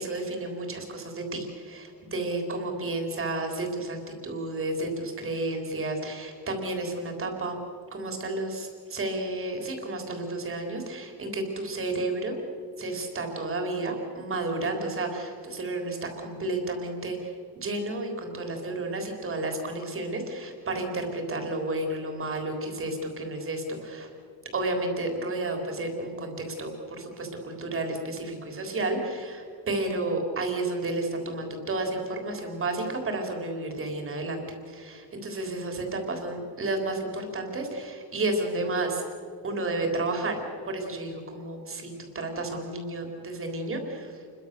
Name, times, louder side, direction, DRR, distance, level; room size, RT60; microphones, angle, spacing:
voice 1, 0.0-7.6 7.9-12.4 12.8-24.1 24.5-39.0 39.4-44.1, right 2 dB, 35° right, 3 dB, 3.6 m, -31 dB
28.5 x 22.5 x 6.8 m, 2.5 s
cardioid pair, 170°, 38 cm